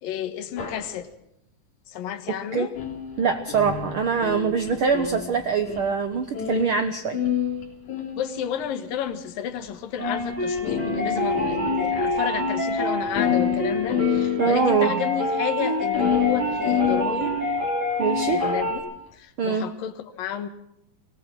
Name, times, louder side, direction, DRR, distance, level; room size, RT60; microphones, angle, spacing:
voice 1, 0.0-1.1 1.9-2.7 8.2-17.4 18.3-20.5, left 9 dB, 75° left, 10 dB, 3.0 m, -31 dB
sound 1, 0.6-0.9 2.8-6.9 7.1-8.7 9.6-9.7 10.2-10.3 10.6-12.1 12.4-12.5 12.7-12.8 13.1-14.7 15.9-17.7 18.3-18.7, left 8 dB, 55° left, 4.7 m, -28 dB
voice 2, 2.3-2.7 3.2-7.2 14.4-14.9 18.0-18.4 19.4-19.7, right 6 dB, 85° right, 8 dB, 1.1 m, -23 dB
sound 2, 10.0-18.8, left 1 dB, 25° right, 6.3 m, -26 dB
24.5 x 18.5 x 6.1 m, 0.78 s
omnidirectional pair, 4.1 m